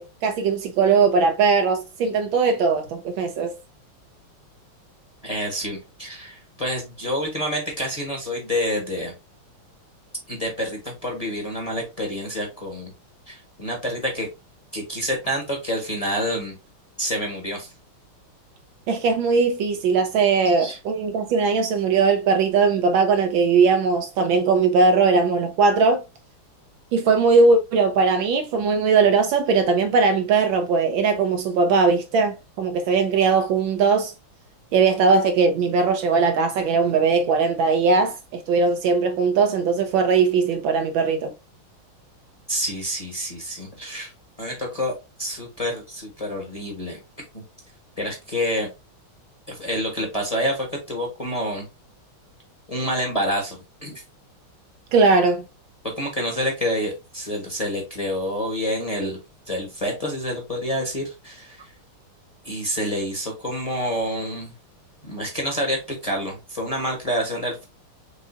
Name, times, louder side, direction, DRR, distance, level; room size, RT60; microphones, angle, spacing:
voice 1, 0.0-3.5 18.9-26.0 26.9-34.1 34.7-41.3 54.9-55.4, right 4 dB, 75° right, 1.3 m, -19 dB
voice 2, 5.2-9.1 10.3-12.9 13.3-14.3 14.7-16.6 17.0-17.7 20.6-20.8 42.5-44.1 44.4-47.0 47.3-47.4 48.0-48.7 49.5-51.7 52.7-54.0 56.0-59.2 59.5-61.7 62.4-64.5 65.0-67.6, equal, 20° left, 1.2 m, -28 dB
4.9 x 3.9 x 2.6 m
omnidirectional pair, 2.4 m